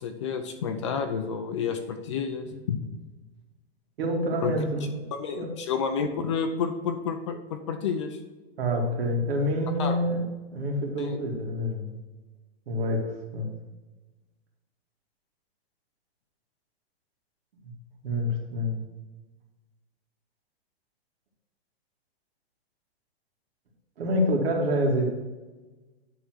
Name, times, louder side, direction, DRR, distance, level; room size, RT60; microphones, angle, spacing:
voice 1, 0.0-2.8 4.4-4.5 5.1-8.2 9.8-10.0 11.0-11.2, left 6 dB, 30° left, 7 dB, 0.5 m, -30 dB
voice 2, 4.0-5.5 8.6-10.2 10.5-11.9 12.7-13.5 18.0-18.8 24.0-25.1, equal, 65° right, 1 dB, 2.2 m, -27 dB
10.0 x 3.8 x 6.1 m, 1.2 s
hypercardioid pair, 170°, 32 cm